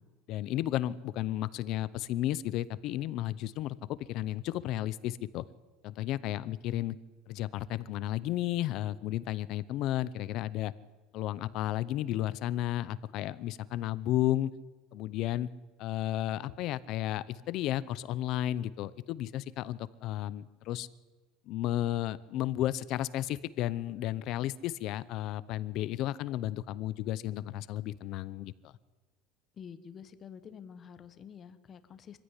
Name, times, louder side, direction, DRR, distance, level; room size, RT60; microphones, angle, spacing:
voice 1, 0.3-5.4 5.8-7.0 7.3-10.7 11.1-14.5 14.9-15.5 15.8-20.9 21.5-28.7, left 13 dB, 40° left, 17 dB, 0.7 m, -33 dB
voice 2, 29.6-32.2, left 7 dB, 25° left, 11 dB, 1.1 m, -48 dB
24.5 x 15.5 x 9.9 m, 1.3 s
cardioid pair, 180°, 0 cm